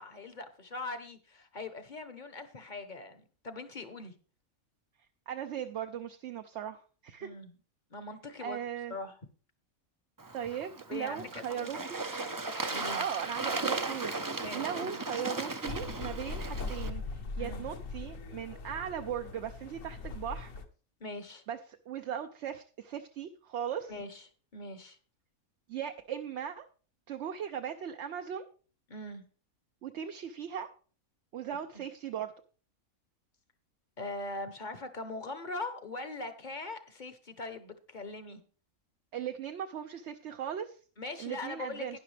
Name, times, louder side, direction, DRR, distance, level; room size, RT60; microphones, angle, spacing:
voice 1, 0.0-4.1 7.2-7.5 7.9-8.6 8.9-9.1 10.9-11.9 12.7-13.0 14.4-15.0 17.4-17.7 21.0-21.4 23.9-24.3 24.5-25.0 28.9-29.2 31.7-31.8 34.0-38.4 41.0-42.0, left 2 dB, 40° left, 10 dB, 0.9 m, -41 dB
voice 2, 5.3-7.3 8.4-8.9 10.3-12.0 12.9-20.5 21.5-21.6 21.9-23.9 25.7-26.7 27.1-28.5 29.8-30.7 31.3-32.3 39.1-40.8 41.2-42.0, right 9 dB, 60° right, 6 dB, 0.8 m, -38 dB
Bird / Water, 10.2-16.9, right 3 dB, 30° right, 0.4 m, -36 dB
sound 1, 15.6-20.6, left 3 dB, 65° left, 1.3 m, -40 dB
11.5 x 10.0 x 3.3 m, 0.38 s
omnidirectional pair, 1.5 m